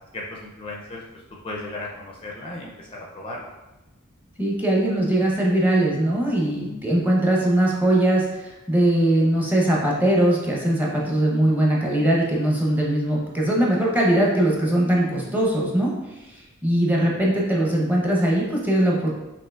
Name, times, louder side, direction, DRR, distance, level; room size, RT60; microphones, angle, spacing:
voice 1, 0.1-1.0 1.4-3.5, left 2 dB, 25° left, -2 dB, 0.4 m, -35 dB
voice 2, 4.4-15.9 16.6-19.1, right 1 dB, 10° right, -3 dB, 0.7 m, -21 dB
5.5 x 2.8 x 2.3 m, 1.1 s
head